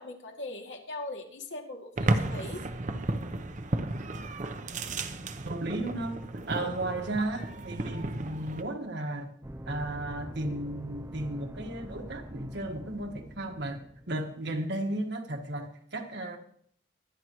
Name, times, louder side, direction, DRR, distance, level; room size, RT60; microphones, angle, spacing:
voice 1, 0.0-2.6 6.5-7.1, left 2 dB, 75° left, 2.5 m, -41 dB
sound 1, 2.0-8.6, right 2 dB, 40° right, 0.8 m, -33 dB
voice 2, 5.4-6.2 6.5-9.3 9.7-13.8 14.1-16.4, right 1 dB, 65° right, 1.6 m, -34 dB
sound 2, 9.4-14.3, right 1 dB, 15° right, 0.6 m, -44 dB
23.5 x 9.8 x 3.1 m
head